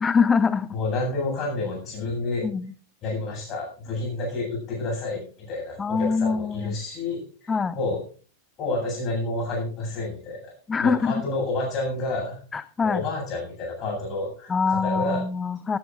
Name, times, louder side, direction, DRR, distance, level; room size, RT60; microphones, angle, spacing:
voice 1, 0.0-0.7 2.4-2.7 5.8-6.7 7.5-7.7 10.7-11.2 12.5-13.0 14.5-15.8, left 5 dB, 15° left, 17 dB, 0.5 m, -24 dB
voice 2, 0.7-2.5 3.0-8.0 8.6-10.5 10.8-12.4 12.8-15.2, left 2 dB, 35° left, 1 dB, 7.8 m, -29 dB
15.5 x 15.0 x 2.6 m, 0.38 s
figure-of-eight pair, 90°, 0 cm